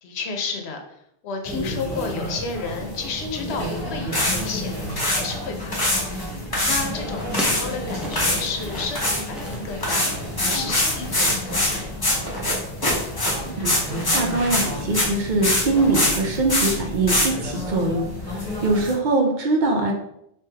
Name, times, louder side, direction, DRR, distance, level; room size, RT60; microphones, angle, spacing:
voice 1, 0.0-0.8 1.2-4.8 5.0-6.1 6.6-10.1 10.4-12.1, left 4 dB, 85° left, 4 dB, 0.9 m, -32 dB
sound 1, 1.4-19.0, left 1 dB, 45° left, 1.5 m, -32 dB
sound 2, 3.6-3.7 4.1-4.4 4.8-5.2 5.6-6.0 6.5-7.6 8.1-8.4 8.7-9.2 9.8-15.2 15.4-15.6 15.9-16.2 16.5-16.7 17.1-17.3, left 1 dB, 25° left, 0.8 m, -22 dB
sound 3, 6.8-13.0, right 1 dB, ahead, 0.3 m, -39 dB
voice 2, 13.4-19.9, right 2 dB, 55° right, 2 dB, 0.7 m, -23 dB
3.2 x 3.0 x 3.3 m, 0.77 s
omnidirectional pair, 1.1 m